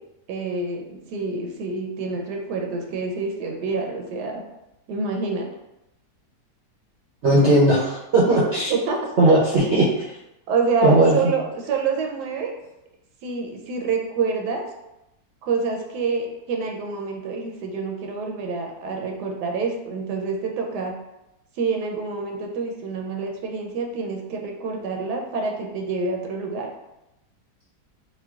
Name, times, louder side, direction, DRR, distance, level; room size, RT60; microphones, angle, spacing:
voice 1, 0.3-4.4 4.9-5.5 8.3-8.4 8.7-9.0 9.2-9.4 10.5-12.5 13.2-14.7 15.4-20.9 21.6-26.7, right 4 dB, 85° right, 1 dB, 1.2 m, -27 dB
voice 2, 7.2-8.7 9.2-9.8 10.8-11.3, right 1 dB, 60° right, -6 dB, 0.7 m, -17 dB
4.5 x 2.1 x 2.3 m, 0.90 s
omnidirectional pair, 1.7 m